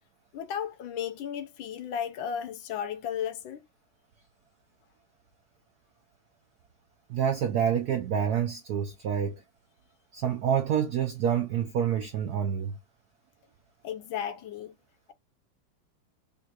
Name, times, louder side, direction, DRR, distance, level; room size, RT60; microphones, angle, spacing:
voice 1, 0.3-3.6 13.8-14.7, left 8 dB, 75° left, 1.3 m, -34 dB
voice 2, 7.1-9.3 10.1-12.8, right 8 dB, 75° right, 0.8 m, -27 dB
5.3 x 2.4 x 2.8 m
omnidirectional pair, 2.4 m